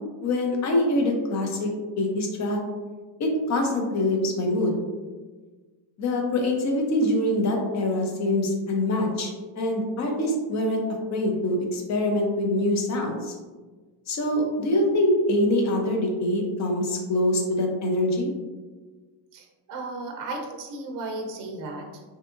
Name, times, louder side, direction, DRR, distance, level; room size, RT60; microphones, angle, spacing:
voice 1, 0.2-1.7 2.0-2.6 3.2-4.7 6.0-10.8 11.1-13.3 14.1-18.3, left 1 dB, 40° left, 1 dB, 0.6 m, -24 dB
voice 2, 19.3-21.9, right 2 dB, 45° right, 2 dB, 0.5 m, -35 dB
3.4 x 2.8 x 2.4 m, 1.3 s
cardioid pair, 145°, 45 cm